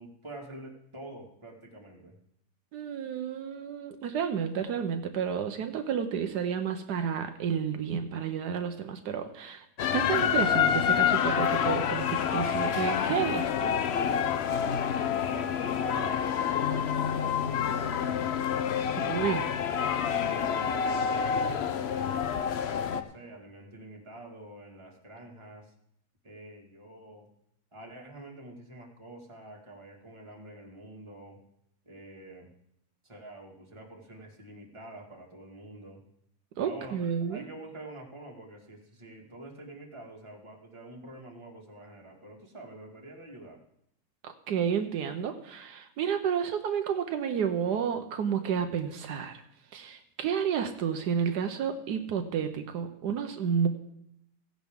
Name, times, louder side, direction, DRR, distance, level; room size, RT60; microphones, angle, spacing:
voice 1, 0.0-2.1 15.2-18.3 18.9-19.5 19.9-25.7 26.2-27.3 27.7-31.4 31.8-32.5 33.0-36.0 36.6-43.6, right 1 dB, 15° right, -1 dB, 1.8 m, -47 dB
voice 2, 2.7-9.6 9.9-13.7 19.0-19.4 36.6-37.4 44.2-49.4 49.7-53.7, right 7 dB, 80° right, 7 dB, 1.4 m, -31 dB
sound 1, 9.8-23.0, left 8 dB, 60° left, 0.6 m, -28 dB
16.0 x 10.0 x 3.6 m, 0.77 s
omnidirectional pair, 1.8 m